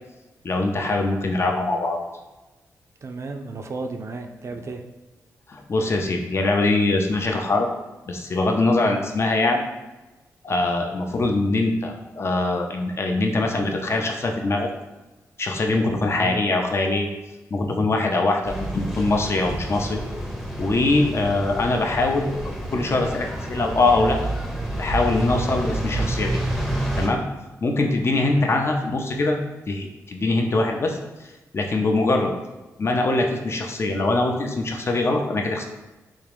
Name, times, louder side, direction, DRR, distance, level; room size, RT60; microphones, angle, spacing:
voice 1, 0.4-2.0 5.5-7.7 8.1-9.6 10.4-14.7 15.4-17.1 17.5-20.0 20.6-22.3 22.7-24.3 24.8-26.3 27.0-27.2 27.6-29.4 29.7-31.0 31.5-32.3 32.8-35.6, left 2 dB, 45° left, 2 dB, 0.6 m, -22 dB
voice 2, 3.0-4.8 8.8-9.0 16.2-16.4 28.3-28.7, right 3 dB, 50° right, 5 dB, 0.4 m, -33 dB
sound 1, 18.4-27.1, right 1 dB, ahead, 0.7 m, -29 dB
3.6 x 2.5 x 3.4 m, 1.1 s
cardioid pair, 60°, 6 cm